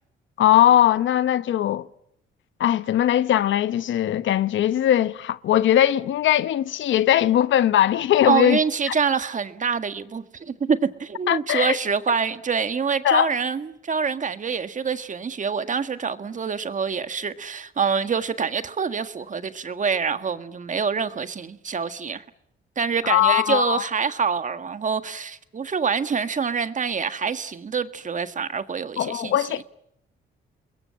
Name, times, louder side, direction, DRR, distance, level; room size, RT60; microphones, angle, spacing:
voice 1, 0.4-1.9 2.6-8.6 8.9-9.0 11.3-11.8 13.0-13.3 23.0-23.8 29.0-29.6, left 11 dB, 75° left, 1.0 m, -20 dB
voice 2, 8.2-22.2 22.8-29.5, right 6 dB, 40° right, 1.8 m, -26 dB
28.5 x 21.5 x 8.7 m
cardioid pair, 90°, 20 cm